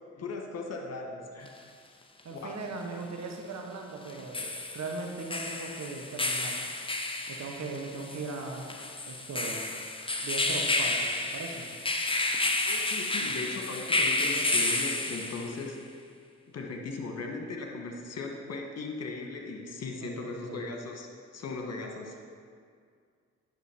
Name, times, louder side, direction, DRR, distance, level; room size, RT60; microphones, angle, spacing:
voice 1, 0.2-1.5 2.3-2.6 4.1-4.5 12.7-15.8 16.5-21.1 21.3-22.1, left 3 dB, 50° left, 2 dB, 1.4 m, -38 dB
sound 1, 1.5-1.6 4.1-15.7, left 2 dB, 15° left, 0.9 m, -31 dB
voice 2, 2.2-4.4 4.7-6.7 7.3-8.7 9.1-9.6 10.2-11.1 11.3-11.6 20.0-20.6, right 3 dB, 55° right, 2 dB, 1.4 m, -38 dB
9.7 x 6.1 x 4.4 m, 2.1 s
hypercardioid pair, 45°, 32 cm